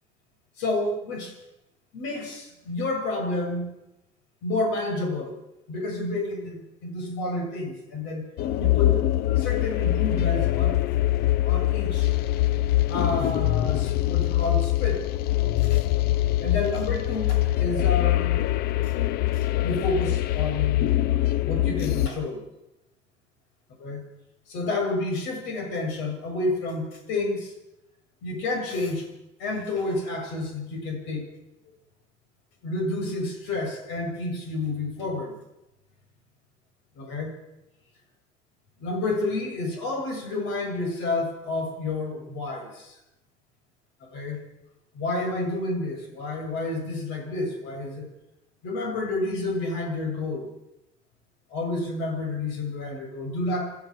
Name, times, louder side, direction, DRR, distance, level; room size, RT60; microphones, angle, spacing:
voice 1, 0.6-1.3 1.9-3.7 4.4-5.3 5.7-8.3 8.6-9.0 9.4-10.8 11.4-12.1 12.9-15.1 15.6-15.8 16.4-18.4 18.8-18.9 19.3-20.9 21.4-22.4 23.8-24.0 24.5-27.5 28.2-29.1 29.4-31.3 32.6-35.4 37.0-37.4 38.8-43.0 44.0-44.4 44.9-48.1 48.6-50.5 51.5-53.8, left 2 dB, 85° left, 3 dB, 7.7 m, -30 dB
sound 1, 8.4-22.1, left 15 dB, 60° left, 0.7 m, -23 dB
29.0 x 12.5 x 7.6 m, 0.94 s
cardioid pair, 165°, 19 cm